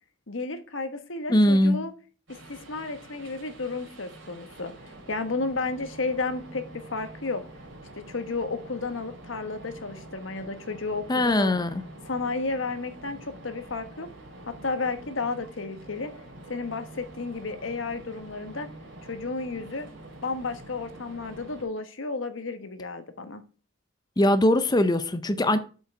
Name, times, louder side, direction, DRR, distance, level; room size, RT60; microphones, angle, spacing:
voice 1, 0.3-1.9 2.3-4.7 5.1-7.4 8.0-11.6 12.0-14.1 14.5-16.1 16.5-18.7 19.0-19.9 20.2-23.4, left 3 dB, 85° left, 1.2 m, -32 dB
voice 2, 1.3-1.8 11.1-11.8 24.2-25.6, left 1 dB, 20° left, 0.6 m, -21 dB
sound 1, 2.3-21.6, right 1 dB, 70° right, 3.0 m, -46 dB
7.9 x 5.5 x 4.6 m
head